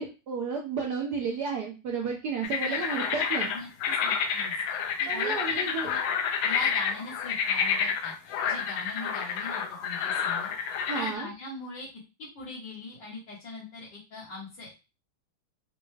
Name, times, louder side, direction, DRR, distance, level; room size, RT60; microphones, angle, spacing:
voice 1, 0.0-3.5 5.1-5.9 10.9-11.3, right 5 dB, 80° right, 0 dB, 0.9 m, -32 dB
sound 1, 2.4-11.1, left 7 dB, 80° left, 1.4 m, -29 dB
voice 2, 3.5-4.5 5.0-6.0 6.4-10.5 10.9-11.9 12.2-14.7, left 2 dB, 60° left, -5 dB, 1.6 m, -41 dB
4.3 x 2.2 x 3.1 m, 0.30 s
omnidirectional pair, 2.4 m